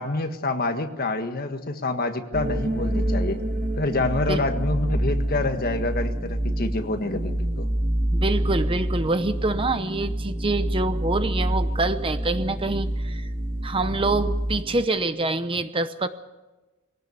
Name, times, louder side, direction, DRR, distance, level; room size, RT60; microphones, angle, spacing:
voice 1, 0.0-3.4 3.8-7.7, left 2 dB, 40° left, 6 dB, 1.6 m, -27 dB
sound 1, 2.3-14.8, right 1 dB, 40° right, 2.1 m, -27 dB
voice 2, 8.1-13.3 13.6-16.1, right 2 dB, 25° right, 11 dB, 0.7 m, -26 dB
22.0 x 17.5 x 7.0 m, 1.1 s
head